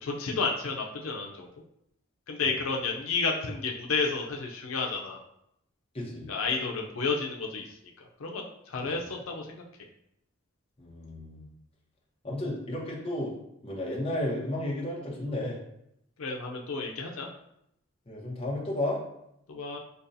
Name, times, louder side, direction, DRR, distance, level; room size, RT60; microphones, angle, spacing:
voice 1, 0.0-1.5 2.3-5.2 6.3-7.6 8.0-9.6 16.2-17.3 19.5-19.8, left 4 dB, 90° left, 0 dB, 0.5 m, -31 dB
voice 2, 5.9-6.3 8.8-9.0 10.8-11.4 12.2-13.3 13.6-15.6 18.1-19.0, left 1 dB, 25° left, -4 dB, 0.8 m, -33 dB
5.2 x 2.2 x 2.6 m, 0.78 s
head